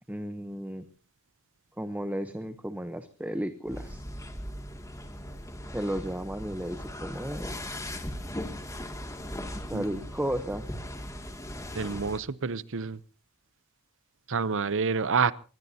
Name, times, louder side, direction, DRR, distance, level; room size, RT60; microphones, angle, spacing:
voice 1, 0.1-0.9 1.8-4.1 5.7-7.6 9.7-10.7, equal, 5° right, 10 dB, 0.9 m, -34 dB
sound 1, 3.7-12.2, left 1 dB, 15° left, 2.4 m, -39 dB
voice 2, 11.7-13.0 14.3-15.3, right 5 dB, 60° right, 17 dB, 0.8 m, -28 dB
24.5 x 20.0 x 2.8 m, 0.38 s
head